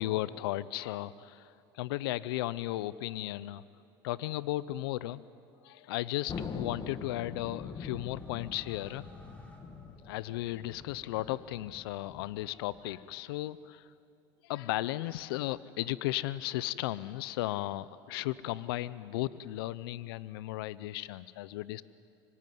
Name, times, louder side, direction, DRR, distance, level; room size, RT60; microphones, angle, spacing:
voice 1, 0.0-3.6 4.0-5.2 5.6-9.0 10.0-13.9 14.4-21.8, left 16 dB, 85° left, 17 dB, 0.6 m, -35 dB
Thunder, 6.3-13.1, left 5 dB, 35° left, 2.1 m, -44 dB
sound 1, 7.1-10.7, equal, 10° left, 4.2 m, -62 dB
25.5 x 24.5 x 9.4 m, 2.6 s
supercardioid pair, 110°, 12 cm